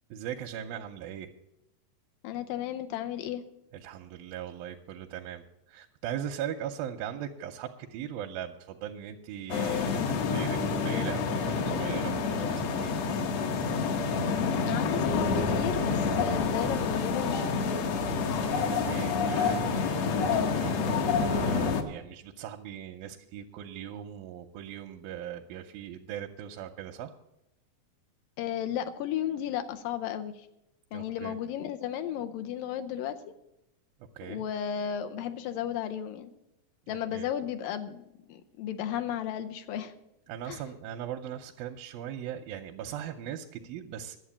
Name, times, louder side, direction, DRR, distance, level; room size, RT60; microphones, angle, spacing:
voice 1, 0.1-1.3 3.7-13.0 18.6-27.1 30.9-31.4 34.2-34.4 36.9-37.3 40.3-44.2, right 10 dB, 85° right, 3 dB, 2.4 m, -40 dB
voice 2, 2.2-3.4 14.3-17.9 28.4-30.5 30.9-33.2 34.2-36.3 36.9-39.9 40.5-40.6, left 10 dB, 80° left, 7 dB, 2.3 m, -34 dB
sound 1, 9.5-21.8, left 5 dB, 65° left, 1.7 m, -28 dB
11.0 x 7.7 x 8.5 m, 0.87 s
omnidirectional pair, 4.1 m